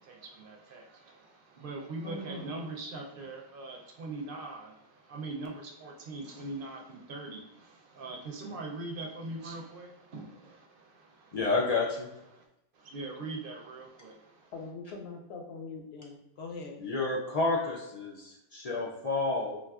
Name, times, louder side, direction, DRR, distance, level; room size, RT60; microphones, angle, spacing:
voice 1, 0.0-11.4 12.3-12.5 12.7-14.5, right 2 dB, 65° right, 1 dB, 0.7 m, -42 dB
voice 2, 2.0-2.5 14.5-16.8, left 3 dB, 80° left, 2 dB, 0.9 m, -42 dB
voice 3, 11.3-12.1 16.8-19.6, left 3 dB, 55° left, -3 dB, 0.4 m, -30 dB
3.7 x 2.3 x 2.3 m, 0.88 s
omnidirectional pair, 1.1 m